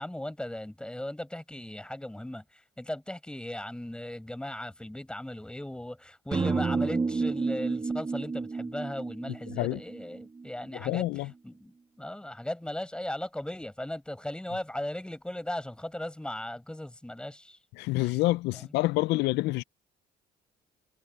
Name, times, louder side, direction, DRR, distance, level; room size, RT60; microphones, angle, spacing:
voice 1, 0.0-17.6 18.0-18.1 18.5-18.7 19.1-19.2, left 1 dB, 5° left, 6.2 m, -38 dB
sound 1, 6.3-10.5, right 4 dB, 25° right, 1.7 m, -30 dB
voice 2, 10.8-11.3 17.8-19.6, left 19 dB, 80° left, 0.5 m, -27 dB
cardioid pair, 110°, 17 cm